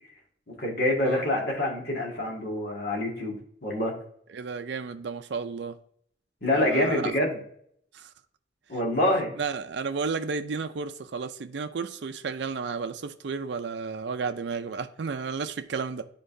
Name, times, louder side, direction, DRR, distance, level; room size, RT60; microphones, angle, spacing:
voice 1, 0.6-3.9 6.4-7.4 8.7-9.3, left 1 dB, 55° left, 1.9 m, -26 dB
voice 2, 4.3-5.8 6.5-7.1 7.9-8.1 9.4-16.1, right 5 dB, 65° right, 0.4 m, -32 dB
9.7 x 3.9 x 2.6 m
head